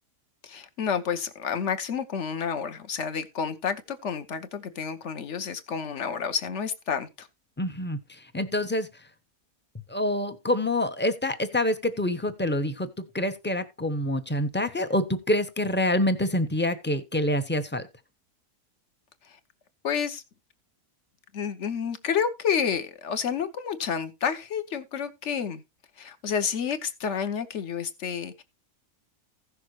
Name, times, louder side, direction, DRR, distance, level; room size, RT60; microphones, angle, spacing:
voice 1, 0.4-7.3 19.2-19.4 19.8-20.2 21.3-25.6 26.0-28.4, left 7 dB, 50° left, 1.2 m, -30 dB
voice 2, 7.6-8.9 9.9-17.8, left 1 dB, 10° left, 0.5 m, -26 dB
16.0 x 6.5 x 3.1 m
omnidirectional pair, 1.7 m